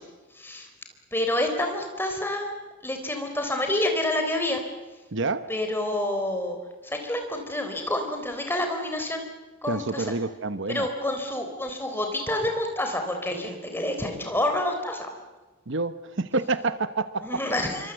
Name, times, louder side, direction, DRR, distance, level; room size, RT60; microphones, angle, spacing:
voice 1, 0.3-0.7 1.1-2.5 2.8-4.6 5.5-6.6 6.8-9.2 9.6-10.1 10.7-15.1 17.2-17.9, left 1 dB, 10° left, 4 dB, 3.7 m, -28 dB
voice 2, 5.1-5.5 9.7-10.9 15.7-17.4, right 3 dB, 60° right, 12 dB, 1.0 m, -28 dB
26.5 x 24.5 x 8.0 m, 1.2 s
head